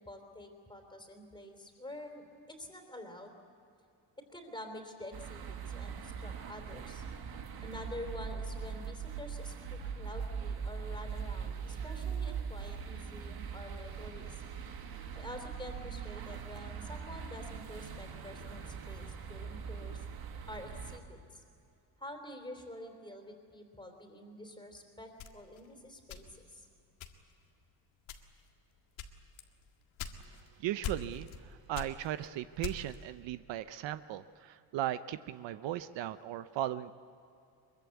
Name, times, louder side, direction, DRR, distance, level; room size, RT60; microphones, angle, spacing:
voice 1, 0.0-3.3 4.3-7.1 7.6-14.4 15.2-20.0 20.5-21.4 22.0-26.7, left 1 dB, 10° left, 4 dB, 3.5 m, -48 dB
sound 1, 5.1-21.0, right 6 dB, 50° right, 2.0 m, -41 dB
sound 2, 25.2-26.6 27.0-27.5 28.0-28.5 29.0-30.5 30.8-31.4 31.7-33.0, left 7 dB, 85° left, 1.9 m, -42 dB
voice 2, 30.6-31.3 31.7-36.9, right 13 dB, 70° right, 13 dB, 0.8 m, -37 dB
23.5 x 22.5 x 8.4 m, 2.7 s
cardioid pair, 145°, 46 cm